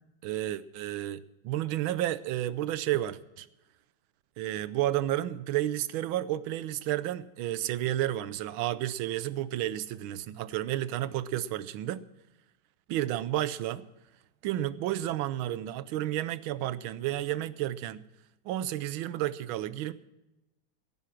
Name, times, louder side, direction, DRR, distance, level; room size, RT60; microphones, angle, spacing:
voice 1, 0.2-3.5 4.4-12.1 12.9-13.9 14.4-18.1 18.4-19.9, right 13 dB, 75° right, 16 dB, 1.5 m, -31 dB
17.5 x 9.5 x 6.0 m, 0.97 s
omnidirectional pair, 2.3 m